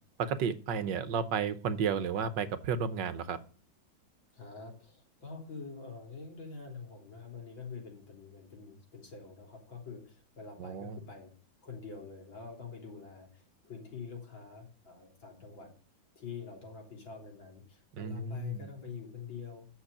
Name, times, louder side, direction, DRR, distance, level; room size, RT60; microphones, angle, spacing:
voice 1, 0.2-3.4 10.6-11.0 18.0-18.7, right 6 dB, 70° right, 13 dB, 1.5 m, -32 dB
voice 2, 4.3-11.3 11.6-15.7 16.2-19.7, left 5 dB, 85° left, 2 dB, 4.1 m, -46 dB
9.4 x 7.0 x 8.5 m, 0.41 s
omnidirectional pair, 2.1 m